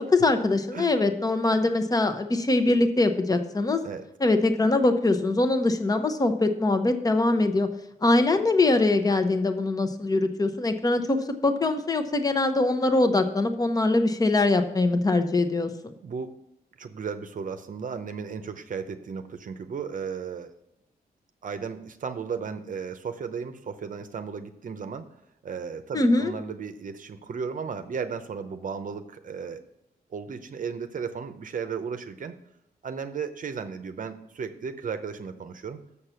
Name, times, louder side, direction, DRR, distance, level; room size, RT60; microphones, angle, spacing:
voice 1, 0.0-3.8 4.2-7.7 8.0-15.9 25.9-26.3, left 2 dB, 25° left, 8 dB, 0.8 m, -23 dB
voice 2, 16.0-16.3 16.8-20.6 21.4-25.1 25.4-29.6 30.1-32.4 32.8-35.8, right 6 dB, 55° right, 9 dB, 0.7 m, -35 dB
7.0 x 6.6 x 5.7 m, 0.86 s
wide cardioid pair, 120°, 16 cm